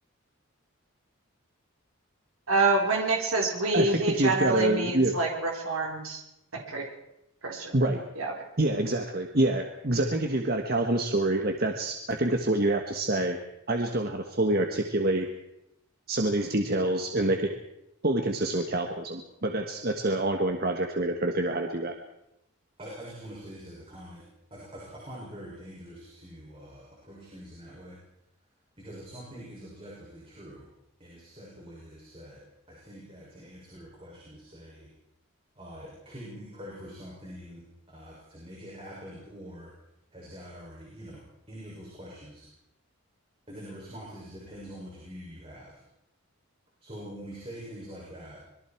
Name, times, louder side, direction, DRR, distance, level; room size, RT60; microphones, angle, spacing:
voice 1, 2.5-6.2 6.7-6.9 7.4-7.8 8.2-8.3, right 3 dB, 75° right, 0 dB, 3.9 m, -26 dB
voice 2, 3.7-5.1 7.7-8.0 8.6-13.4 13.7-15.3 16.1-17.5 18.0-21.9, right 1 dB, 45° right, 4 dB, 1.5 m, -26 dB
voice 3, 22.8-24.2 24.5-28.0 28.8-30.7 31.0-32.4 32.7-34.9 35.5-39.7 40.1-42.5 43.5-45.8 46.8-48.4, equal, 25° right, -5 dB, 6.7 m, -45 dB
25.5 x 22.5 x 4.6 m, 0.85 s
head